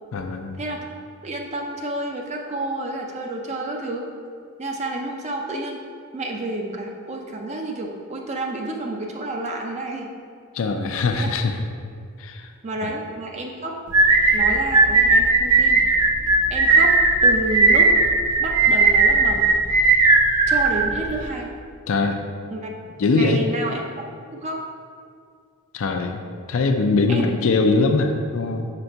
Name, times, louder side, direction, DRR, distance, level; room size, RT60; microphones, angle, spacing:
voice 1, 0.1-0.6 10.5-11.6 12.2-12.5 21.9-22.2 23.0-23.4 25.7-26.2 26.5-28.7, left 3 dB, 65° left, 5 dB, 0.4 m, -21 dB
voice 2, 1.2-4.1 4.6-5.8 6.1-10.1 11.1-11.3 12.6-13.8 14.3-15.8 16.5-17.0 17.2-17.9 18.4-19.5 20.5-21.5 22.5-22.7 23.1-23.9 24.3-24.6 27.1-27.3, right 2 dB, 30° right, 1 dB, 0.5 m, -29 dB
sound 1, 13.9-21.3, right 3 dB, 90° right, 0.7 m, -17 dB
5.7 x 4.0 x 4.5 m, 2.2 s
head